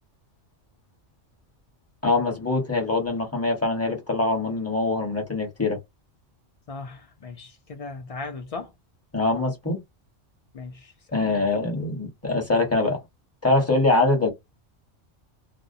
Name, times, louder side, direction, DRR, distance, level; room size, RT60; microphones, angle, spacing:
voice 1, 2.0-5.8 9.1-9.8 11.1-13.0 13.4-14.3, left 2 dB, 15° left, 0.9 m, -23 dB
voice 2, 6.7-8.7 10.5-11.5, left 3 dB, 70° left, 0.3 m, -38 dB
2.5 x 2.0 x 2.6 m
omnidirectional pair, 1.3 m